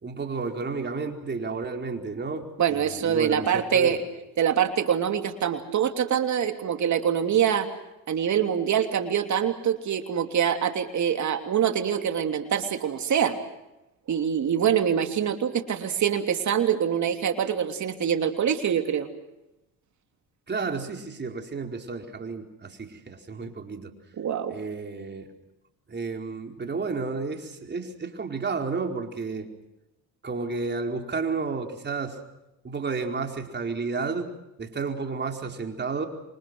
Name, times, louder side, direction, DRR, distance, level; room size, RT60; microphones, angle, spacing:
voice 1, 0.0-4.0 20.5-23.9 24.5-25.3 25.9-29.5 30.2-32.2 32.6-34.3 34.6-36.1, right 4 dB, 30° right, 3 dB, 4.6 m, -32 dB
voice 2, 2.6-4.0 4.4-7.7 8.1-13.3 14.1-19.1 24.2-24.6, right 8 dB, 50° right, 6 dB, 3.0 m, -24 dB
27.5 x 24.5 x 6.3 m, 0.92 s
cardioid pair, 95°, 36 cm